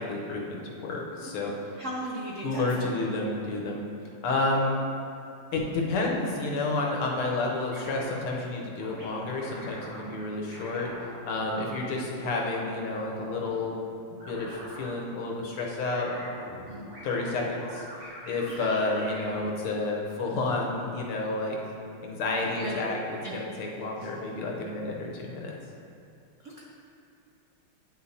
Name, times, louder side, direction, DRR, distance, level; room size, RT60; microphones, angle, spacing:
voice 1, 0.1-1.5 2.4-3.8 4.2-4.8 5.5-10.9 11.2-13.7 14.1-16.3 17.0-17.9 18.3-21.6 22.0-25.5, left 2 dB, 90° left, -1 dB, 1.8 m, -30 dB
voice 2, 1.8-2.9 11.6-11.7 16.7-16.9 18.6-18.7 22.4-22.7 23.2-23.4 26.4-26.6, right 1 dB, 75° right, -4 dB, 0.7 m, -37 dB
sound 1, 6.9-7.1 7.7-8.3 8.8-10.0 10.5-11.6 12.3-13.6 14.2-14.9 15.7-19.4, equal, 45° right, 2.3 m, -44 dB
9.5 x 6.1 x 2.8 m, 2.5 s
omnidirectional pair, 2.3 m